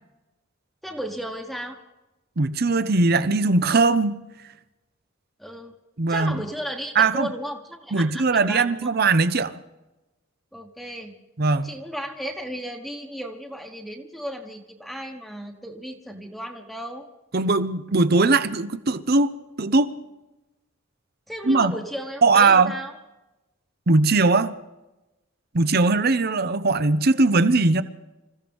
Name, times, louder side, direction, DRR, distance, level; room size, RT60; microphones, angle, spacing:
voice 1, 0.8-1.8 5.4-5.7 6.1-8.8 10.5-11.1 11.6-17.1 21.3-23.0, equal, ahead, 1.2 m, -34 dB
voice 2, 2.4-4.2 6.0-6.4 7.0-7.3 7.9-9.5 11.4-11.7 17.3-19.3 19.6-19.9 21.5-21.7 22.2-22.7 23.9-24.5 25.5-27.8, right 3 dB, 50° right, 0.8 m, -20 dB
27.0 x 15.0 x 3.6 m
head